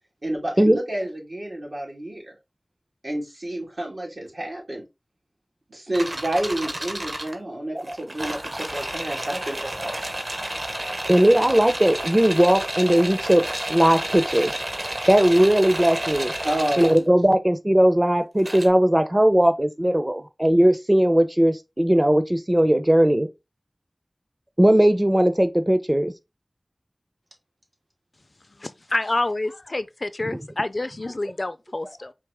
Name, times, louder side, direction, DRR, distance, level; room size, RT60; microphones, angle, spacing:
voice 1, 0.2-2.3 3.0-4.8 5.7-10.0 16.4-16.9, right 1 dB, 80° right, 2.2 m, -29 dB
sound 1, 5.9-7.3 7.8-17.0 18.4-18.7, right 1 dB, 50° right, 1.2 m, -31 dB
voice 2, 11.1-14.6 15.1-16.3 16.8-23.3 24.6-26.1, right 1 dB, 25° right, 0.7 m, -18 dB
voice 3, 28.6-32.1, left 2 dB, 60° left, 0.4 m, -28 dB
4.7 x 3.0 x 3.4 m
wide cardioid pair, 45°, 0 cm